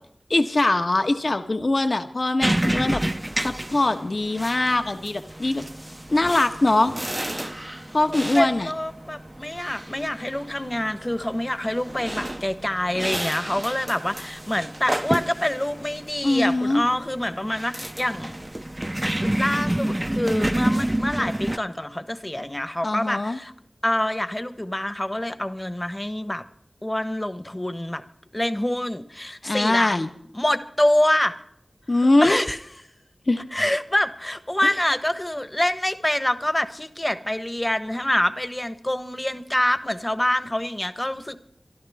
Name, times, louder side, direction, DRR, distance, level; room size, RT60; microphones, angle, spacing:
voice 1, 0.3-3.0 3.4-5.6 6.1-6.9 7.9-8.7 16.2-16.8 22.8-23.4 29.4-30.1 31.9-32.4 33.3-33.4 34.6-34.7, left 2 dB, 55° left, 7 dB, 1.4 m, -22 dB
sound 1, 2.4-21.6, right 1 dB, 20° right, 0.6 m, -29 dB
voice 2, 8.0-18.4 19.2-23.5 23.8-26.4 26.8-28.0 28.3-30.0 30.3-31.3 32.0-32.6 33.5-41.4, left 1 dB, 20° left, 11 dB, 1.2 m, -26 dB
26.5 x 12.0 x 3.6 m, 0.67 s
wide cardioid pair, 65°, 0 cm